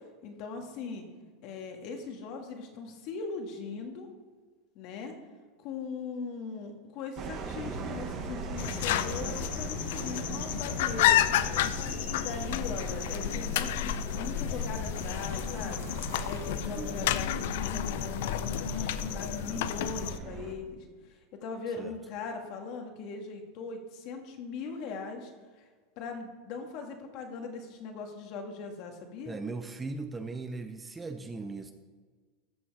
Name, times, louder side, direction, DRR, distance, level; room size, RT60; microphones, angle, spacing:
voice 1, 0.2-1.1 1.4-4.1 4.8-5.1 5.6-15.9 16.3-25.3 26.0-29.4, left 4 dB, 50° left, 4 dB, 1.8 m, -40 dB
sound 1, 7.2-20.5, right 5 dB, 35° right, 1.2 m, -40 dB
sound 2, 8.6-20.2, left 12 dB, 70° left, 0.5 m, -31 dB
voice 2, 16.7-17.2 21.8-21.9 29.3-31.7, right 3 dB, 15° right, 7 dB, 0.6 m, -38 dB
14.0 x 6.2 x 4.8 m, 1.5 s
supercardioid pair, 145°, 0 cm